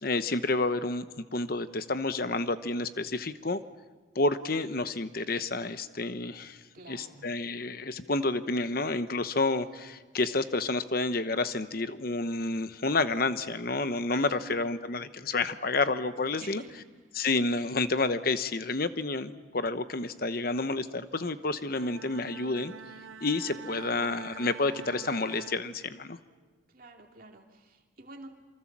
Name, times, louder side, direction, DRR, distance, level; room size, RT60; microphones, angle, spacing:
voice 1, 0.0-3.6 4.1-6.6 6.9-16.6 17.2-22.7 23.2-26.2, left 3 dB, 50° left, 12 dB, 1.0 m, -30 dB
voice 2, 6.7-7.3 14.1-14.6 16.4-16.9 23.6-24.1 26.7-28.3, right 2 dB, 45° right, 2 dB, 2.7 m, -49 dB
Bowed string instrument, 21.6-26.3, right 6 dB, 85° right, 0.7 m, -46 dB
27.0 x 24.5 x 7.4 m, 1.4 s
head